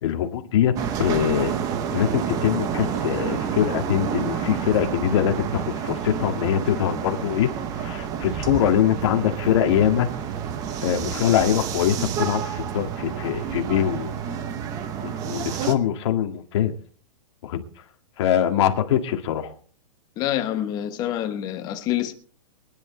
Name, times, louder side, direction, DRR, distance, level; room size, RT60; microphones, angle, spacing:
voice 1, 0.0-1.6 1.9-7.5 7.8-10.1 10.8-14.2 15.0-16.7 17.4-17.6 18.2-19.5, left 10 dB, 50° left, 1.9 m, -23 dB
sound 1, 0.8-15.7, right 8 dB, 20° right, 0.9 m, -29 dB
voice 2, 20.2-22.1, left 12 dB, 20° left, 1.1 m, -26 dB
24.0 x 10.5 x 3.3 m
hypercardioid pair, 165°, 19 cm